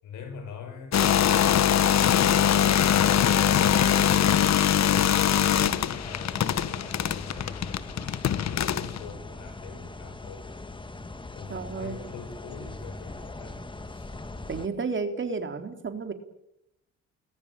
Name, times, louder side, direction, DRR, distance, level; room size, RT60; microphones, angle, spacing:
voice 1, 0.0-4.2 4.9-10.5 11.3-14.2, left 6 dB, 85° left, 8 dB, 7.0 m, -44 dB
sound 1, 0.9-9.0, left 10 dB, 60° left, 1.3 m, -22 dB
sound 2, 3.4-14.7, left 2 dB, 15° left, 1.7 m, -40 dB
voice 2, 5.5-5.8 11.5-12.0 14.5-16.1, right 4 dB, 40° right, 6 dB, 3.8 m, -32 dB
29.5 x 21.0 x 9.0 m, 0.85 s
cardioid pair, 90°, 30 cm